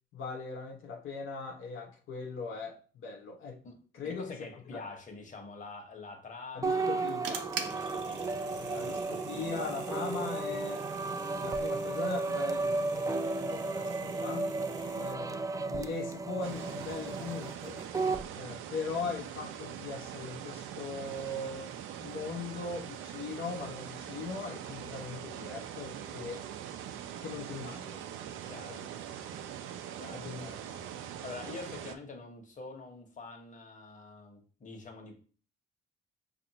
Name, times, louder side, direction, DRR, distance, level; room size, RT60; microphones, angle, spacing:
voice 1, 0.1-3.6 3.9-4.4 4.7-4.8 6.5-7.5 8.7-10.9 11.4-14.5 14.9-15.4 15.7-17.8 18.3-21.7 22.0-26.4 27.2-28.0 29.3-29.4 30.1-30.5, left 4 dB, 80° left, 0.7 m, -39 dB
voice 2, 3.6-7.1 7.5-9.3 14.7-15.0 28.5-28.9 30.0-35.1, left 3 dB, 40° left, 1.0 m, -46 dB
sound 1, 6.6-18.3, right 3 dB, 15° right, 0.4 m, -34 dB
sound 2, 6.7-15.1, right 6 dB, 65° right, 0.8 m, -45 dB
sound 3, 16.4-32.0, right 10 dB, 90° right, 0.4 m, -43 dB
5.0 x 2.5 x 2.8 m
cardioid pair, 90°, 20 cm